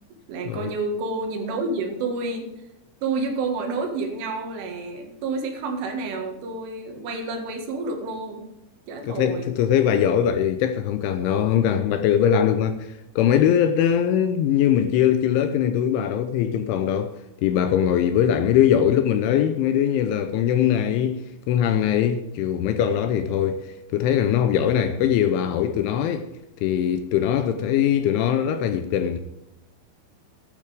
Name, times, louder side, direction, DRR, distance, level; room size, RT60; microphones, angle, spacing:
voice 1, 0.3-2.5 3.0-8.4 8.9-9.5, right 3 dB, 70° right, 4.2 m, -29 dB
voice 2, 9.1-17.1 17.4-26.3 26.6-29.2, left 9 dB, 80° left, 2.9 m, -21 dB
12.5 x 12.0 x 3.5 m
omnidirectional pair, 6.0 m